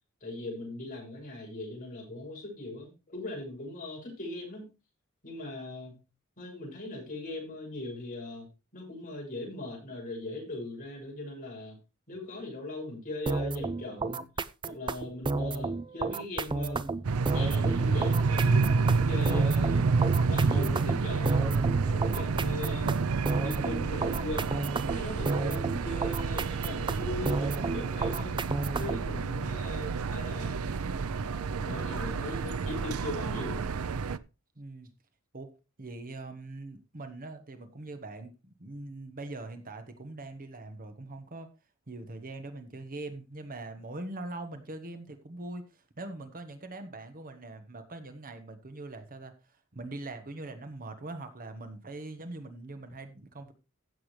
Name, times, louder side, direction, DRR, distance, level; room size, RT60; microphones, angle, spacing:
voice 1, 0.2-4.7 5.2-6.0 6.4-8.5 8.7-11.8 12.1-14.3 14.6-16.9 17.3-19.9 20.3-23.0 23.4-24.6 24.9-28.4 28.8-30.6 31.6-33.7, left 2 dB, 40° left, -2 dB, 6.5 m, -39 dB
sound 1, 13.3-29.1, right 3 dB, 20° right, 0.4 m, -32 dB
sound 2, 17.0-34.2, right 4 dB, 85° right, 0.6 m, -29 dB
voice 2, 29.2-29.7 34.6-34.9 35.3-35.5 35.8-41.5 41.9-53.5, right 2 dB, 40° right, 8 dB, 1.2 m, -42 dB
15.5 x 7.1 x 3.2 m, 0.28 s
head